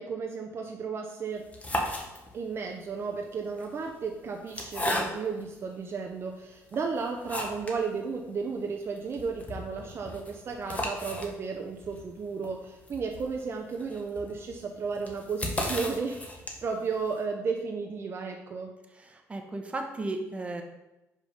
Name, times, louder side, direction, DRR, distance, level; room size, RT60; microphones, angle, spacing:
voice 1, 0.0-1.5 2.3-18.7, right 5 dB, 45° right, 2 dB, 0.6 m, -34 dB
sound 1, 1.4-2.6 3.4-5.5 6.1-6.2 6.7-7.8 8.1-8.2 8.5-8.6 9.0-16.8, left 1 dB, 25° left, 1.2 m, -35 dB
voice 2, 19.0-20.6, right 2 dB, 20° right, 3 dB, 1.0 m, -35 dB
5.3 x 5.2 x 5.1 m, 1.0 s
cardioid pair, 105°, 6 cm